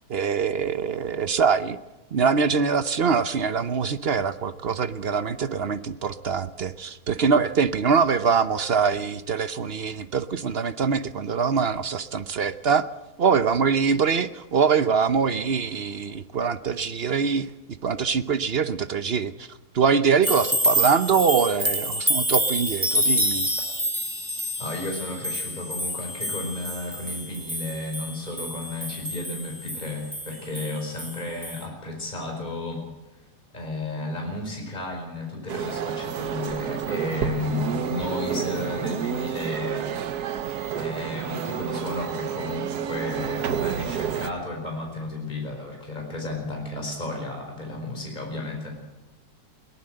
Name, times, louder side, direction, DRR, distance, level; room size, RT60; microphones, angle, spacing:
voice 1, 0.1-1.8 2.1-12.9 13.2-17.5 17.8-19.5 19.7-23.5, right 6 dB, 45° right, 12 dB, 0.9 m, -23 dB
sound 1, 20.2-31.2 31.4-31.6, equal, 10° right, 2.2 m, -27 dB
voice 2, 24.6-32.8 33.5-39.9 40.7-48.8, left 2 dB, 25° left, 1 dB, 5.0 m, -33 dB
sound 2, 35.5-44.3, right 8 dB, 75° right, 1.6 m, -29 dB
22.0 x 18.5 x 7.7 m, 1.1 s
omnidirectional pair, 1.7 m